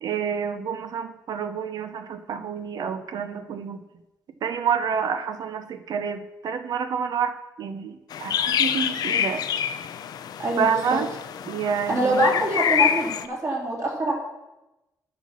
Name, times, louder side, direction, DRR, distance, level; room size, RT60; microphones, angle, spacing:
voice 1, 0.0-3.8 4.4-9.4 10.6-11.1 11.5-12.3, right 7 dB, 65° right, 9 dB, 0.6 m, -28 dB
sound 1, 8.1-13.3, left 9 dB, 70° left, 0.5 m, -26 dB
voice 2, 10.4-11.0 11.9-14.1, right 1 dB, 40° right, -3 dB, 3.0 m, -24 dB
9.6 x 5.8 x 6.1 m, 0.99 s
wide cardioid pair, 150°, 7 cm